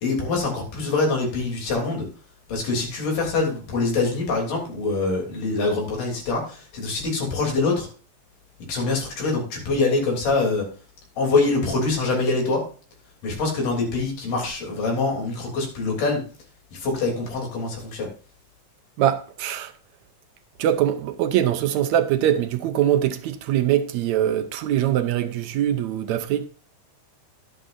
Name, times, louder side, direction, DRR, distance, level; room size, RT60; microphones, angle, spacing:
voice 1, 0.0-2.1 2.5-7.9 8.7-10.7 11.2-12.7 13.2-16.2 16.7-18.1, left 3 dB, 85° left, 4.8 m, -24 dB
voice 2, 19.0-19.7 20.6-26.5, right 11 dB, 75° right, 1.9 m, -22 dB
11.0 x 11.0 x 2.6 m
omnidirectional pair, 3.6 m